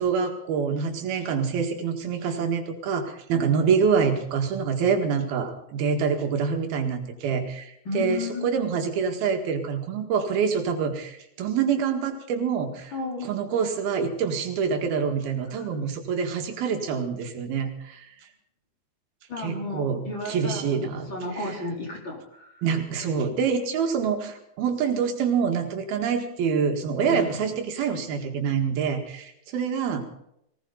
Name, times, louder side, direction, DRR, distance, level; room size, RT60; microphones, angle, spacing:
voice 1, 0.0-12.9 13.2-18.1 19.4-21.1 21.4-21.6 22.6-30.0, right 6 dB, 85° right, 4 dB, 3.8 m, -26 dB
voice 2, 7.9-8.5 12.9-13.3 19.3-20.8 21.1-22.5 27.0-27.4, left 2 dB, 30° left, -1 dB, 4.4 m, -33 dB
19.5 x 18.5 x 4.0 m, 0.77 s
omnidirectional pair, 4.2 m